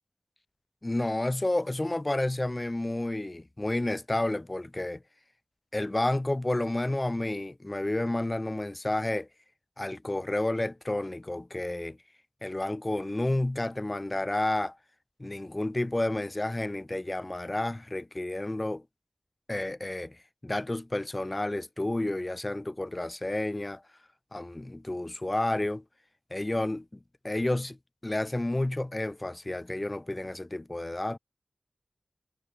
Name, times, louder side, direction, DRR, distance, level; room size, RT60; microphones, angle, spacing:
voice 1, 0.8-5.0 5.7-9.3 9.8-12.0 12.4-14.8 15.2-18.8 19.5-20.2 20.4-23.8 24.3-25.8 26.3-27.0 27.2-27.8 28.0-31.2, left 1 dB, 30° left, 0.7 m, -30 dB
cardioid pair, 45°, 0 cm